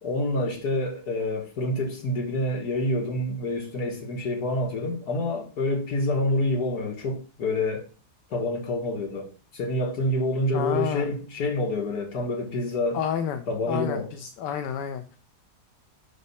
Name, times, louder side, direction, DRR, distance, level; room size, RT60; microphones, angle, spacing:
voice 1, 0.0-7.8 8.3-13.0 13.5-14.1, left 1 dB, 60° left, 2.0 m, -27 dB
voice 2, 10.5-11.2 12.9-15.2, left 8 dB, 80° left, 1.2 m, -30 dB
5.2 x 4.2 x 5.5 m
omnidirectional pair, 1.9 m